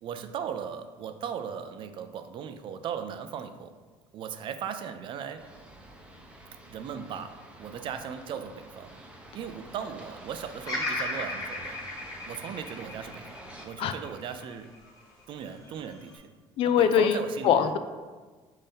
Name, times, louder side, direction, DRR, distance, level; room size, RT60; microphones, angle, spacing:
voice 1, 0.0-3.7 4.1-5.5 6.5-8.9 9.3-11.8 12.3-14.7 15.3-16.3 16.6-17.7, right 7 dB, 50° right, 9 dB, 0.4 m, -38 dB
sound 1, 5.4-13.7, right 1 dB, 10° right, 0.7 m, -48 dB
Bird vocalization bird call bird song, 10.6-14.9 15.4-16.2, left 2 dB, 35° left, 1.4 m, -36 dB
voice 2, 16.6-17.8, left 8 dB, 60° left, 9 dB, 0.4 m, -23 dB
5.2 x 2.7 x 3.6 m, 1.4 s
cardioid pair, 100°, 11 cm